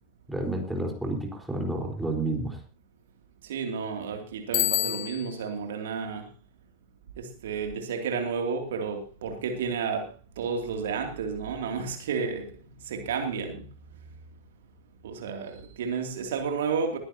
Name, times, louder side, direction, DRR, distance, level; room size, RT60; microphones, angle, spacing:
voice 1, 0.3-2.6, right 2 dB, 5° right, 4.2 m, -30 dB
voice 2, 3.4-6.3 7.2-13.7 15.0-17.0, right 5 dB, 60° right, 2.6 m, -31 dB
Bicycle bell, 4.5-5.5, left 15 dB, 40° left, 1.3 m, -28 dB
21.0 x 14.5 x 2.8 m
figure-of-eight pair, 90°, 0 cm